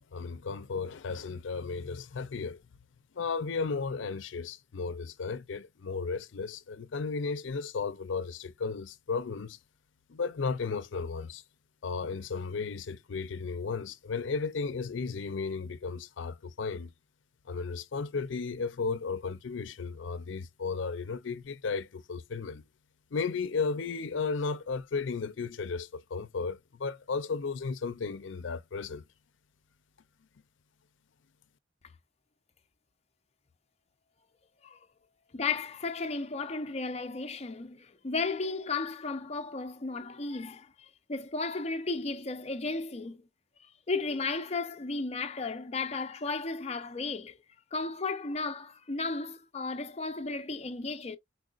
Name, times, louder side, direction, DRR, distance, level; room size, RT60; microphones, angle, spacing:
voice 1, 0.0-2.6 3.1-9.6 10.1-11.4 11.8-16.9 17.5-22.6 23.1-29.0, left 4 dB, 75° left, 0.5 m, -34 dB
voice 2, 35.3-43.3 43.6-47.4 47.7-51.2, left 3 dB, 35° left, 0.6 m, -34 dB
4.9 x 4.5 x 2.4 m
head